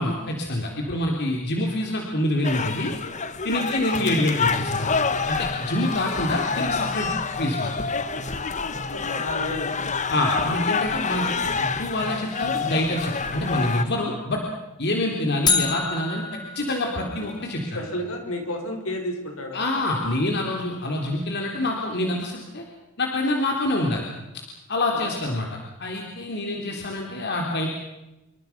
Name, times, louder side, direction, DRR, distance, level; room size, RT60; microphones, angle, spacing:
voice 1, 0.0-2.9 3.4-5.0 5.3-7.7 10.1-14.4 14.8-17.8 19.5-22.6 23.0-24.1 24.7-27.7, left 1 dB, 50° left, 0 dB, 3.5 m, -26 dB
sound 1, 2.4-13.8, left 4 dB, 35° left, 1.3 m, -27 dB
voice 2, 8.8-10.1 17.0-17.1 17.4-20.0 24.9-25.0 26.5-26.8, left 1 dB, 75° left, 3 dB, 6.2 m, -33 dB
sound 2, 15.5-17.6, left 5 dB, 20° left, 2.3 m, -27 dB
28.0 x 24.5 x 6.0 m, 0.96 s
head